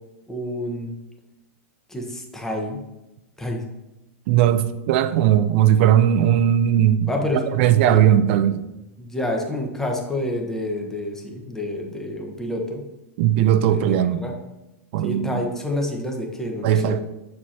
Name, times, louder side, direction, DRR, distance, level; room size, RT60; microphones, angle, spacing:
voice 1, 0.3-0.9 1.9-2.8 3.4-3.6 7.1-7.5 7.9-8.0 9.0-12.9 13.7-14.3 15.0-16.9, left 1 dB, 5° left, 1.0 m, -28 dB
voice 2, 4.3-7.1 7.5-8.6 13.2-14.2 14.9-15.4 16.6-17.0, right 10 dB, 55° right, 0.5 m, -18 dB
7.4 x 4.6 x 2.8 m
hypercardioid pair, 120°, 8 cm